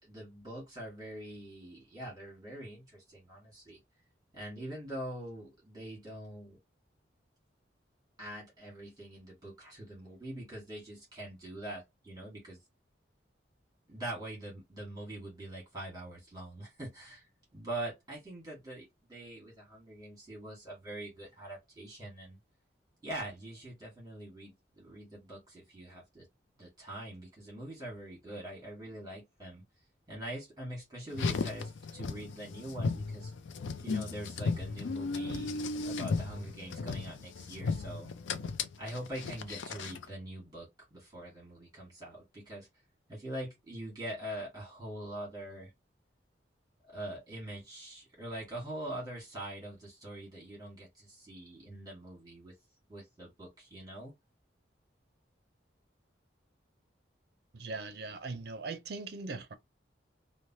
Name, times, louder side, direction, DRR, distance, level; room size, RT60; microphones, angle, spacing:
voice 1, 0.0-3.8 4.3-6.6 8.2-12.6 13.9-22.4 23.0-26.3 26.6-29.6 30.1-33.3 33.8-38.1 38.8-42.7 43.1-45.7 46.9-52.5 52.9-54.1, right 1 dB, 20° right, 1.3 m, -43 dB
Car, 31.1-40.1, left 4 dB, 80° left, 0.4 m, -35 dB
voice 2, 57.5-59.5, right 3 dB, 55° right, 0.5 m, -40 dB
3.1 x 2.1 x 2.6 m
head